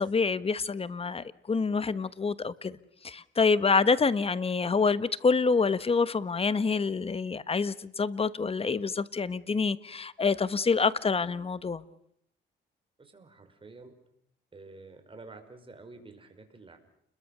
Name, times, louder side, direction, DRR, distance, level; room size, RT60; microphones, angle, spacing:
voice 1, 0.0-2.8 3.0-11.8, left 4 dB, 30° left, 1.3 m, -27 dB
voice 2, 13.0-14.0 14.5-16.8, right 3 dB, 25° right, 5.6 m, -49 dB
30.0 x 22.0 x 6.8 m
cardioid pair, 90°, 20 cm